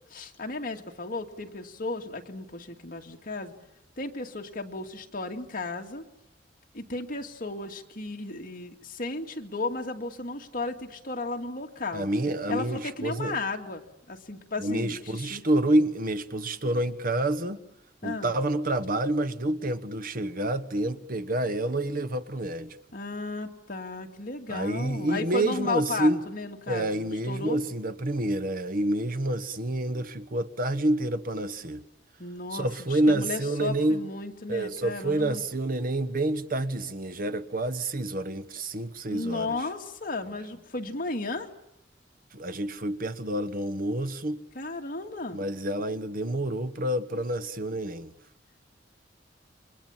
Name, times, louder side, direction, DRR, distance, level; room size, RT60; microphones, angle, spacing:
voice 1, 0.1-3.5 4.0-6.0 6.7-12.1 12.5-13.8 14.1-15.4 18.0-18.3 22.9-27.6 32.2-35.4 39.1-41.5 44.5-45.4, left 3 dB, 50° left, 2.3 m, -34 dB
voice 2, 11.9-13.4 14.6-17.6 18.0-22.8 24.5-26.2 26.7-31.8 32.5-34.0 34.5-39.6 42.3-44.4 45.3-48.1, right 1 dB, 50° right, 1.2 m, -28 dB
29.0 x 24.0 x 7.4 m
head